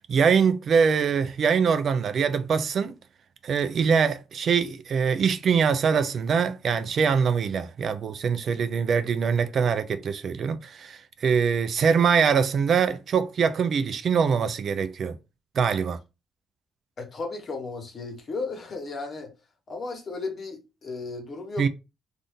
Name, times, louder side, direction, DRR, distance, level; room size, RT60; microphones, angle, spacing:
voice 1, 0.1-3.0 3.4-15.2 15.6-16.0 21.6-21.7, right 6 dB, 55° right, 0.4 m, -23 dB
voice 2, 17.0-19.3 19.7-21.7, left 3 dB, 45° left, 1.2 m, -34 dB
2.6 x 2.5 x 3.5 m
cardioid pair, 90°, 0 cm